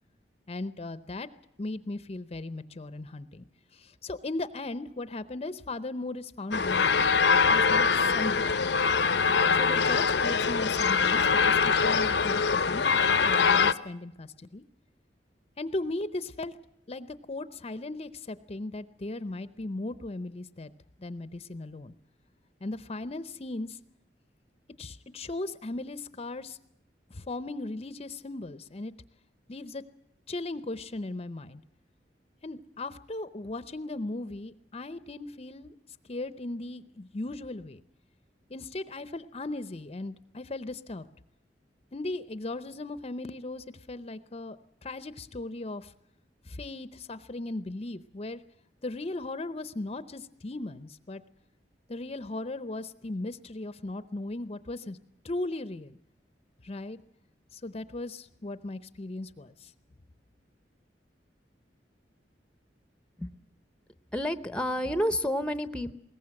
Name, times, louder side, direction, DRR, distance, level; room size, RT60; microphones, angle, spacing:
voice 1, 0.5-1.3 1.6-3.5 3.7-7.0 7.3-8.8 9.6-12.9 13.2-14.6 15.6-16.6 16.9-20.7 21.0-21.9 22.6-23.8 24.8-26.6 27.1-28.9 29.5-29.8 30.3-31.6 32.4-35.7 36.1-37.8 38.5-41.1 41.9-45.9 46.4-48.4 48.8-51.2 51.9-55.0 55.2-56.0 56.6-57.0 57.5-59.7, left 2 dB, 35° left, 14 dB, 0.7 m, -37 dB
sound 1, 6.5-13.7, left 5 dB, 75° left, 0.7 m, -23 dB
voice 2, 64.1-65.9, equal, 5° left, 12 dB, 0.9 m, -29 dB
21.5 x 18.5 x 7.7 m, 0.78 s
head